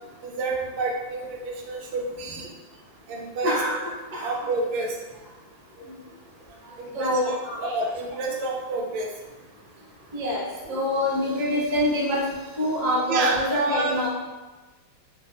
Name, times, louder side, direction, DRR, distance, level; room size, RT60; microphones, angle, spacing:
voice 1, 0.2-2.5 3.1-3.6 4.2-5.0 6.8-9.1 13.1-14.0, right 3 dB, 85° right, 0 dB, 1.4 m, -29 dB
voice 2, 3.4-3.8 4.1-4.3 6.9-7.8 10.1-10.4 10.7-12.2 12.6-14.1, left 1 dB, 50° right, -6 dB, 0.5 m, -25 dB
4.7 x 2.9 x 2.2 m, 1.2 s
omnidirectional pair, 2.2 m